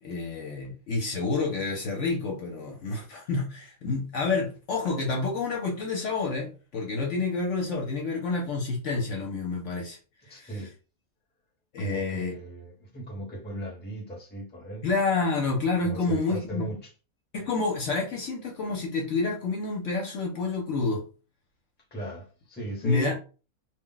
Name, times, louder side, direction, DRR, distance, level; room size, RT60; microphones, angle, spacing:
voice 1, 0.0-10.0 10.3-10.6 11.7-12.4 14.8-16.7 17.3-21.1 22.8-23.2, left 3 dB, 65° left, 0.9 m, -29 dB
voice 2, 10.3-10.7 11.8-14.9 15.8-16.9 21.9-23.2, right 2 dB, 10° left, 0.7 m, -37 dB
2.4 x 2.1 x 3.7 m
omnidirectional pair, 1.5 m